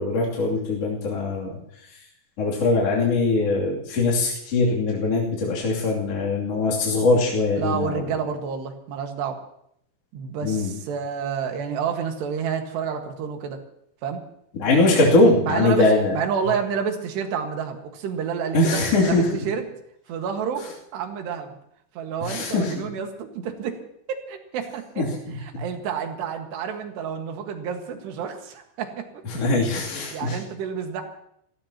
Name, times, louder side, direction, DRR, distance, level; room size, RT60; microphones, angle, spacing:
voice 1, 0.0-1.5 2.4-8.0 10.4-10.7 14.6-16.2 18.5-19.3 22.2-22.9 25.0-25.6 29.3-30.4, left 2 dB, 40° left, -5 dB, 3.6 m, -21 dB
voice 2, 7.6-9.4 10.1-13.6 14.0-14.2 15.5-15.9 16.1-19.6 20.1-20.7 20.9-21.6 22.0-23.8 24.1-25.0 25.3-29.1 29.4-29.5 30.1-31.0, right 7 dB, 80° right, 4 dB, 3.9 m, -29 dB
30.0 x 16.0 x 2.9 m, 0.72 s
omnidirectional pair, 4.8 m